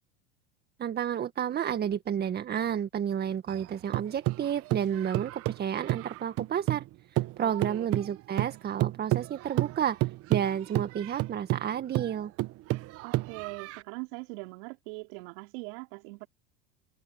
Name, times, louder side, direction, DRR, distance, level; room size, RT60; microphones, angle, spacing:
voice 1, 0.8-12.3, right 9 dB, 35° right, 1.9 m, -31 dB
sound 1, 3.5-6.9 7.2-13.8, right 18 dB, 50° right, 1.3 m, -31 dB
voice 2, 7.4-7.9 13.0-16.3, right 28 dB, 65° right, 4.3 m, -41 dB
hypercardioid pair, 95°, 30 cm